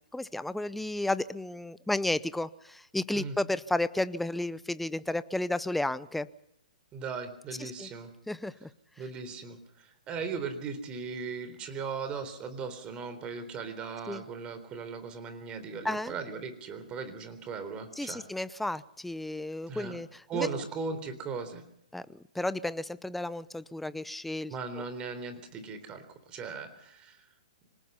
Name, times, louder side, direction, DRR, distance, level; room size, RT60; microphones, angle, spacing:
voice 1, 0.0-6.3 7.6-7.9 8.3-8.7 14.1-14.2 15.8-16.2 18.0-20.5 21.9-24.8, left 1 dB, 5° left, 16 dB, 0.7 m, -33 dB
voice 2, 6.9-8.1 9.0-18.2 19.7-20.0 20.3-21.6 24.5-27.3, right 5 dB, 25° right, 10 dB, 3.9 m, -38 dB
25.5 x 19.0 x 5.7 m, 0.77 s
hypercardioid pair, 135°, 4 cm